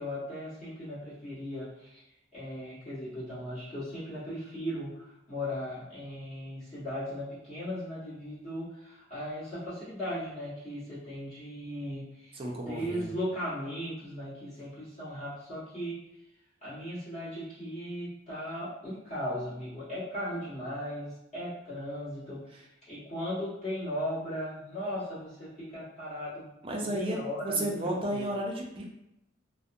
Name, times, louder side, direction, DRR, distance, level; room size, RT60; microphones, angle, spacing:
voice 1, 0.0-2.0 2.3-12.3 12.7-16.0 16.6-22.4 22.9-26.5 26.8-28.3, equal, 35° left, -12 dB, 1.3 m, -37 dB
voice 2, 12.3-13.0 26.6-28.9, right 1 dB, 30° right, -1 dB, 0.4 m, -33 dB
2.6 x 2.1 x 2.5 m, 0.85 s
head